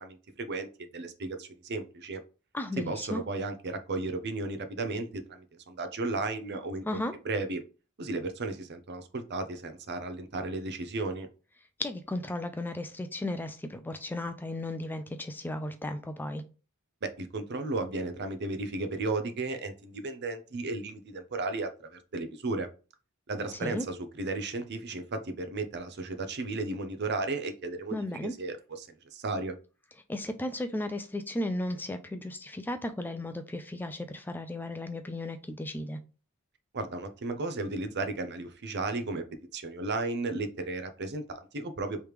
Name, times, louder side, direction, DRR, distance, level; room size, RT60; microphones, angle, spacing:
voice 1, 0.0-2.2 2.8-7.6 8.0-11.3 17.0-22.7 23.3-29.6 36.7-39.2 39.5-42.0, right 3 dB, 50° right, 0.7 m, -34 dB
voice 2, 2.5-3.2 6.8-7.1 11.8-16.4 23.5-23.9 27.9-28.3 30.1-36.0, left 1 dB, 10° left, 0.3 m, -35 dB
3.4 x 3.1 x 4.8 m
head